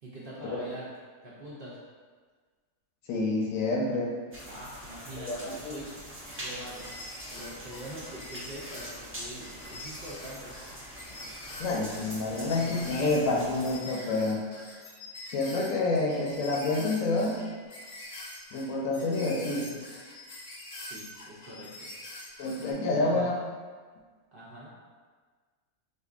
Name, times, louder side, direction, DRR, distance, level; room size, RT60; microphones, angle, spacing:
voice 1, 0.0-0.9 1.2-1.8 4.4-6.9 7.3-10.7 20.8-21.9 22.7-23.3 24.3-24.7, right 1 dB, 55° right, -7 dB, 0.7 m, -44 dB
voice 2, 3.1-4.2 5.3-5.8 11.6-14.5 15.3-17.4 18.5-19.8 22.4-23.5, left 2 dB, 75° left, -1 dB, 1.0 m, -28 dB
sound 1, 4.3-13.8, equal, 15° right, 0.5 m, -44 dB
sound 2, 6.3-22.7, left 2 dB, 50° left, 0.6 m, -45 dB
4.3 x 2.6 x 2.4 m, 1.5 s
omnidirectional pair, 1.4 m